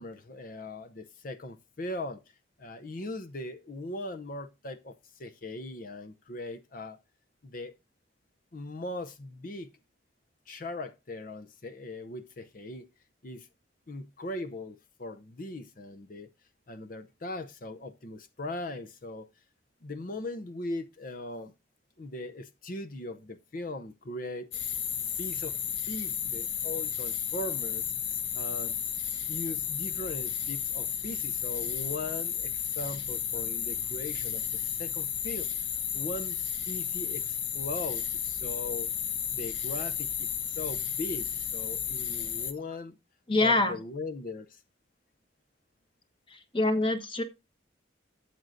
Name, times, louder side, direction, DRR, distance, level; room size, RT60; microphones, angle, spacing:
voice 1, 0.0-2.2 2.6-7.0 7.4-7.7 8.5-9.7 10.5-12.8 13.2-13.5 13.9-16.3 16.7-19.3 19.8-21.5 22.0-24.5 25.2-25.6 25.9-27.9 28.3-28.7 29.3-34.4 34.8-35.6 35.9-36.4 36.7-38.9 39.3-40.3 40.6-43.0 43.4-44.6, left 2 dB, 45° left, 0.7 m, -39 dB
sound 1, 24.5-42.5, left 8 dB, 75° left, 1.2 m, -33 dB
voice 2, 43.3-43.8 46.3-47.2, left 2 dB, 25° left, 1.3 m, -25 dB
12.5 x 7.6 x 2.6 m
head